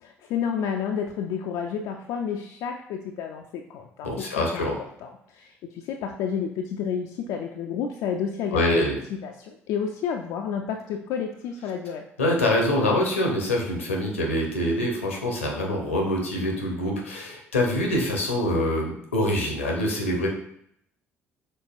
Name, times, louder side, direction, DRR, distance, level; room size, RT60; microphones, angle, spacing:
voice 1, 0.0-4.1 4.4-4.7 5.0-8.8 9.2-12.0, left 7 dB, 60° left, 3 dB, 0.4 m, -30 dB
voice 2, 4.0-4.7 8.5-9.0 12.2-20.3, left 1 dB, 85° left, 0 dB, 0.8 m, -25 dB
5.4 x 3.9 x 2.5 m, 0.71 s
figure-of-eight pair, 50°, 7 cm